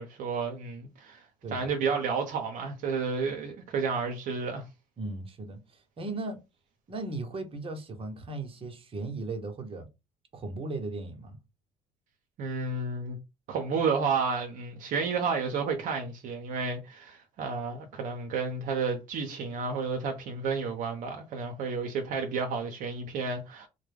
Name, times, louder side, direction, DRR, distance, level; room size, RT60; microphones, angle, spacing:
voice 1, 0.0-1.2 1.5-4.6 12.4-13.2 13.5-23.7, right 5 dB, 70° right, 0.6 m, -31 dB
voice 2, 5.0-6.4 6.9-9.9 10.3-11.4, right 2 dB, 40° right, 0.8 m, -37 dB
2.2 x 2.1 x 3.2 m
supercardioid pair, 75°, 14 cm